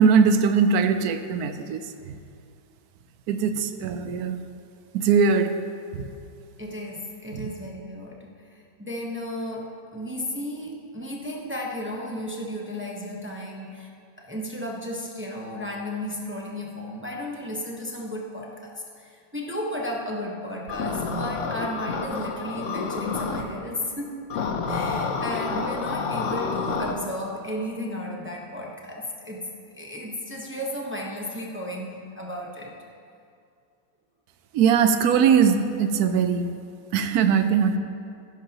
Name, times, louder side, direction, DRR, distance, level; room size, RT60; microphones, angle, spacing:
voice 1, 0.0-1.8 3.3-4.4 4.9-5.6 5.9-6.1 7.3-7.5 34.5-36.5 36.9-37.8, right 6 dB, 75° right, 9 dB, 0.9 m, -20 dB
voice 2, 6.6-13.9 14.2-24.2 24.7-32.7, left 1 dB, 15° right, -2 dB, 0.5 m, -34 dB
sound 1, 20.7-23.4 24.3-26.9, left 5 dB, 60° left, 0.8 m, -29 dB
16.0 x 11.0 x 2.9 m, 2.4 s
omnidirectional pair, 2.1 m